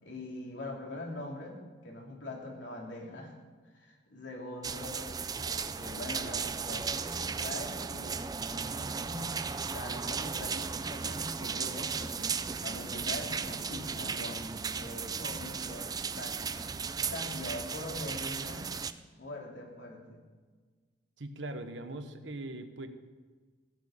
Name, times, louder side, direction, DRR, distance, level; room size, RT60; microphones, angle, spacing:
voice 1, 0.0-3.3 3.7-5.1 5.4-9.4 9.7-12.4 12.6-16.8 17.1-18.7 19.2-20.2, left 1 dB, 80° left, -1 dB, 3.0 m, -43 dB
sound 1, 4.6-18.9, right 5 dB, 20° right, 0.4 m, -36 dB
sound 2, 12.6-17.1, left 1 dB, 20° left, 2.1 m, -58 dB
voice 2, 21.2-22.9, right 2 dB, 85° right, 8 dB, 1.1 m, -40 dB
15.5 x 6.4 x 8.5 m, 1.4 s
head